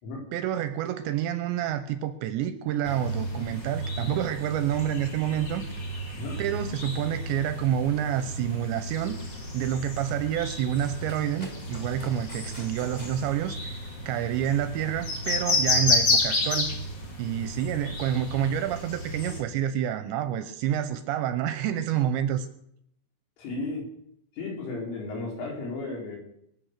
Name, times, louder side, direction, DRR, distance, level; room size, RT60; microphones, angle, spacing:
voice 1, 0.3-5.6 6.4-9.2 9.5-13.8 14.1-16.7 17.2-22.5, right 10 dB, 80° right, 10 dB, 2.8 m, -28 dB
sound 1, 2.8-19.4, left 2 dB, 45° left, 1.3 m, -31 dB
Run, 8.9-15.0, left 1 dB, 15° left, 1.7 m, -48 dB
voice 2, 23.4-23.9 24.3-26.2, left 3 dB, 75° left, -2 dB, 6.6 m, -34 dB
23.5 x 8.4 x 6.6 m, 0.74 s
omnidirectional pair, 5.7 m